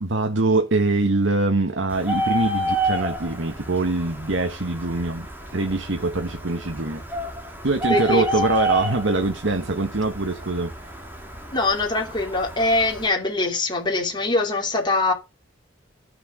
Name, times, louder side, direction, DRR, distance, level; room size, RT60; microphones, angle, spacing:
voice 1, 0.0-5.3 5.5-7.0 7.6-10.7, right 2 dB, 80° right, 1.3 m, -23 dB
Bird, 1.9-13.1, right 1 dB, 10° right, 2.8 m, -30 dB
voice 2, 7.9-8.3 11.5-15.1, left 2 dB, 25° left, 3.0 m, -23 dB
12.0 x 6.8 x 3.8 m
head